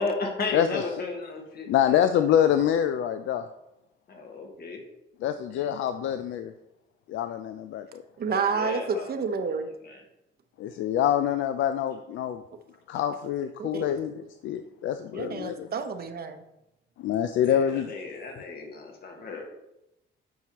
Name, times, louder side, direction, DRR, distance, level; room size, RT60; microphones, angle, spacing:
voice 1, 0.0-2.2 4.1-4.8 8.3-9.1 17.5-19.4, left 3 dB, 50° left, 2 dB, 1.5 m, -34 dB
voice 2, 0.5-0.8 1.7-3.4 5.2-6.5 7.1-8.0 10.6-12.4 12.9-15.7 17.0-17.9, left 10 dB, 75° left, 9 dB, 0.4 m, -26 dB
voice 3, 8.2-9.7 13.6-13.9 15.1-16.4, right 5 dB, 50° right, 7 dB, 0.8 m, -29 dB
9.1 x 4.7 x 3.0 m, 0.89 s
cardioid pair, 90°, 20 cm